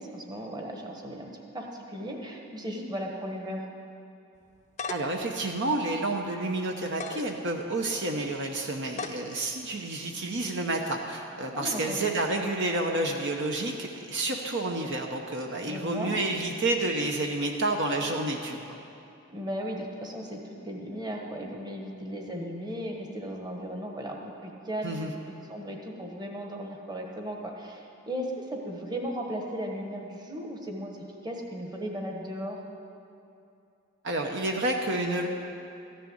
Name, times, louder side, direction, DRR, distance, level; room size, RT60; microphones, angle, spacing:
voice 1, 0.0-3.6 11.5-12.0 15.6-16.1 19.3-32.6, equal, 20° right, 1 dB, 1.3 m, -36 dB
sound 1, 4.4-5.2 5.7-5.8 6.8-7.3 7.9-8.0 8.9-9.2, left 4 dB, 35° left, 0.6 m, -36 dB
voice 2, 4.9-18.8 24.8-25.1 34.0-35.3, right 2 dB, 55° right, 2 dB, 0.9 m, -29 dB
14.0 x 6.7 x 9.4 m, 2.6 s
head